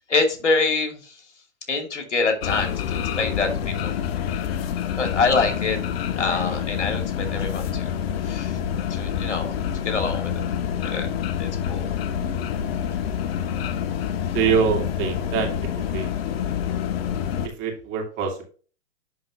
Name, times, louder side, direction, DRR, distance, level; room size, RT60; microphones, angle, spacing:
voice 1, 0.1-1.1 1.7-3.9 4.9-5.8 6.2-7.9 8.2-8.6 8.9-9.6 9.8-10.3 10.9-11.1 11.4-11.9, left 4 dB, 85° left, 3 dB, 2.7 m, -25 dB
sound 1, 2.4-17.5, left 8 dB, 60° left, 1.0 m, -27 dB
voice 2, 14.3-16.1 17.6-18.5, right 7 dB, 35° right, 3 dB, 2.4 m, -25 dB
10.5 x 3.9 x 2.9 m, 0.39 s
hypercardioid pair, 115°, 35 cm